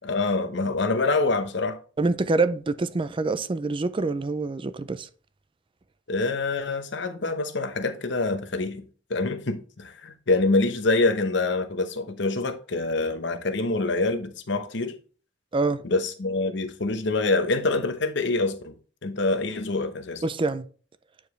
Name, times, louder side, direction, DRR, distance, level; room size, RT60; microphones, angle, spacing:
voice 1, 0.0-1.8 6.1-8.8 9.1-14.9 15.8-18.7 19.0-20.2, left 3 dB, 70° left, 0.9 m, -25 dB
voice 2, 2.0-5.1 15.5-15.8 20.2-20.6, right 3 dB, 30° right, 0.4 m, -25 dB
9.1 x 4.8 x 3.2 m
head